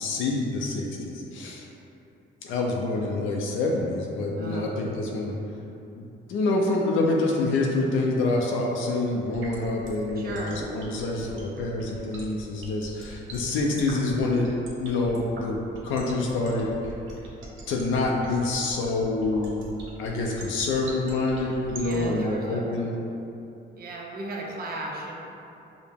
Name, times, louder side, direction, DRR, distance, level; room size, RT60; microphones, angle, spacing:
voice 1, 0.0-1.7 2.4-5.3 6.0-6.1 6.3-14.5 14.8-16.7 17.7-19.7 20.0-22.9, left 2 dB, 80° left, -1 dB, 0.5 m, -26 dB
voice 2, 4.4-4.7 10.2-10.6 21.8-22.7 23.7-25.1, right 2 dB, 50° right, -1 dB, 0.7 m, -36 dB
sound 1, 9.3-22.1, right 3 dB, 80° right, 0.8 m, -42 dB
4.8 x 2.1 x 3.4 m, 2.8 s
cardioid pair, 90°, 20 cm